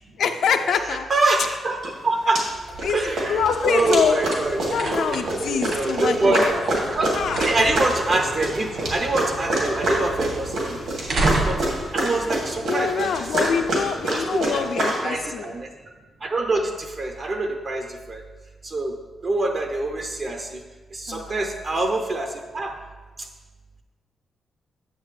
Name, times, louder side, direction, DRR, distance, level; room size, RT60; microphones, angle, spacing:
voice 1, 0.2-1.1 2.8-3.0 3.3-4.2 4.7-6.5 7.1-7.5 12.7-15.5 21.1-21.5, left 6 dB, 70° left, 6 dB, 0.4 m, -25 dB
voice 2, 0.7-2.4 2.9-5.1 5.4-6.6 6.9-7.1 7.4-10.8 11.5-11.6 11.9-13.4 14.0-15.7 16.2-18.2 18.6-18.9 19.2-20.6 20.9-22.7, right 2 dB, 35° right, 4 dB, 0.5 m, -25 dB
sound 1, 1.8-1.9 2.4-2.9 3.2-15.0, right 1 dB, 75° right, 2.3 m, -26 dB
sound 2, 2.4-13.1, right 2 dB, 55° right, 1.2 m, -32 dB
9.3 x 7.1 x 3.2 m, 1.3 s
wide cardioid pair, 165°, 0 cm